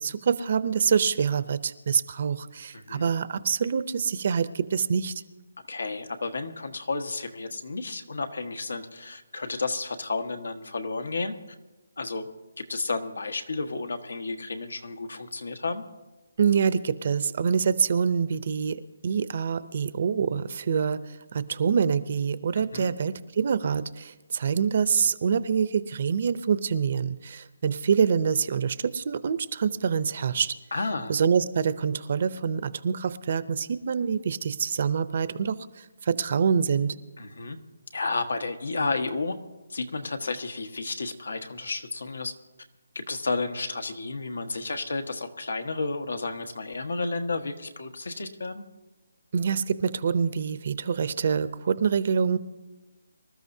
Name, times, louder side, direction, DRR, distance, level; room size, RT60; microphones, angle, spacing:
voice 1, 0.0-5.2 16.4-30.5 31.1-36.9 49.3-52.4, right 6 dB, 40° right, 15 dB, 0.5 m, -26 dB
voice 2, 2.7-3.1 5.7-11.3 12.0-12.3 12.6-15.8 22.5-22.9 30.7-31.1 37.2-37.6 37.9-39.3 39.7-42.3 42.9-48.6, left 3 dB, 90° left, 7 dB, 1.4 m, -32 dB
25.5 x 13.0 x 2.7 m, 1.1 s
hypercardioid pair, 170°, 0 cm